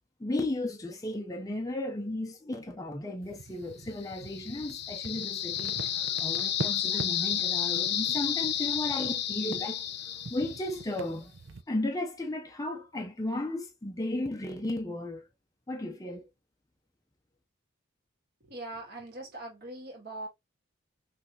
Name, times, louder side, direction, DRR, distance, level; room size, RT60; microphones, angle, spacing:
voice 1, 0.2-9.8 10.3-11.3 11.7-15.3 15.7-16.2, left 1 dB, 15° left, 0.6 m, -34 dB
sound 1, 3.2-11.6, right 2 dB, 75° right, 0.8 m, -44 dB
sound 2, 4.0-11.0, left 10 dB, 55° left, 0.7 m, -31 dB
voice 2, 18.4-20.3, right 2 dB, 50° right, 2.1 m, -41 dB
5.8 x 3.3 x 2.8 m
head